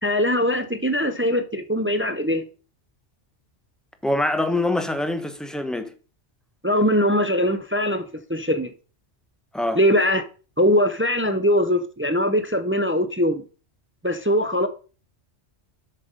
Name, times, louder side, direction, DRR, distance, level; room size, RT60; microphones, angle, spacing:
voice 1, 0.0-2.4 6.6-8.7 9.7-10.2 10.6-13.4 14.0-14.7, equal, 20° right, 0.3 m, -21 dB
voice 2, 4.0-5.9 9.5-9.8, left 1 dB, ahead, 0.8 m, -24 dB
7.4 x 5.8 x 5.2 m
omnidirectional pair, 1.2 m